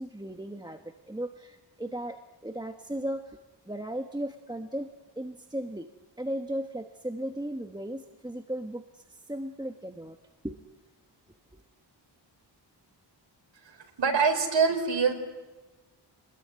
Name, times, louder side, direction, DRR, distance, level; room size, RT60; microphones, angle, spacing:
voice 1, 0.0-3.4 3.7-4.9 5.2-5.9 6.2-10.2 10.4-10.6 11.5-11.6, right 1 dB, 10° right, 6 dB, 1.2 m, -36 dB
voice 2, 13.7-15.1, right 5 dB, 80° right, 5 dB, 4.6 m, -25 dB
28.0 x 21.0 x 9.6 m, 1.2 s
wide cardioid pair, 140°, 44 cm